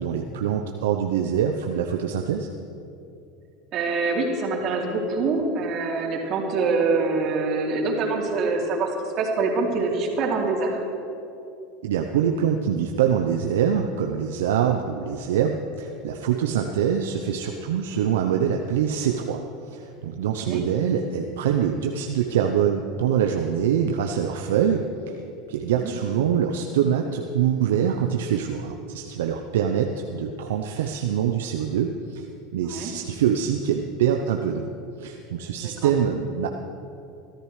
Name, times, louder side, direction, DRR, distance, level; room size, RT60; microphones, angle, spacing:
voice 1, 0.0-2.5 11.8-19.4 19.7-24.9 25.5-32.2 32.5-34.7 35.0-36.5, right 8 dB, 75° right, 3 dB, 0.8 m, -24 dB
voice 2, 3.7-8.9 9.2-10.8 20.4-20.6 25.6-25.9 32.6-32.9 35.6-35.9, right 3 dB, 50° right, -1 dB, 3.0 m, -25 dB
24.0 x 13.5 x 3.3 m, 2.7 s
hypercardioid pair, 85°, 0 cm